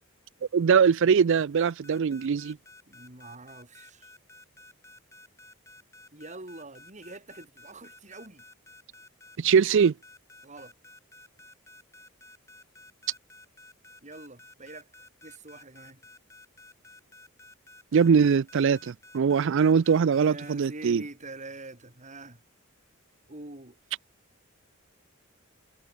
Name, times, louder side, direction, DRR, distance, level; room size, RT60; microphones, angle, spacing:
voice 1, 0.5-2.6 9.4-9.9 17.9-21.0, right 6 dB, 60° right, 0.4 m, -22 dB
sound 1, 1.3-20.5, left 2 dB, 15° left, 1.4 m, -52 dB
voice 2, 2.9-4.1 6.1-8.4 10.4-10.7 14.0-14.9 15.2-16.0 20.1-22.4 23.3-23.8, right 2 dB, 35° right, 3.4 m, -44 dB
head